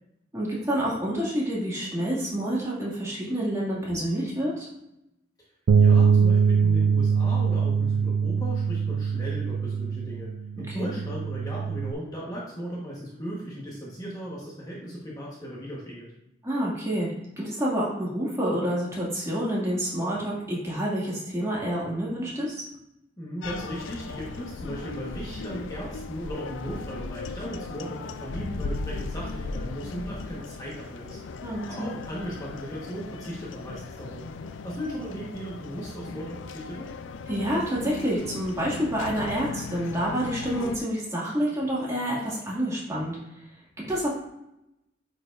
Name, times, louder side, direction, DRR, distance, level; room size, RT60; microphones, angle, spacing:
voice 1, 0.3-4.7 10.7-10.9 16.4-17.1 17.4-22.6 31.4-31.9 37.3-43.2 43.8-44.1, equal, 15° right, -6 dB, 2.1 m, -28 dB
voice 2, 5.7-16.1 23.2-34.2 34.6-36.9, equal, 20° left, -5 dB, 1.3 m, -37 dB
Bass guitar, 5.7-11.9, right 6 dB, 85° right, 0.4 m, -23 dB
sound 1, 23.4-40.8, left 4 dB, 85° left, 0.4 m, -37 dB
9.3 x 4.7 x 2.6 m, 0.87 s
head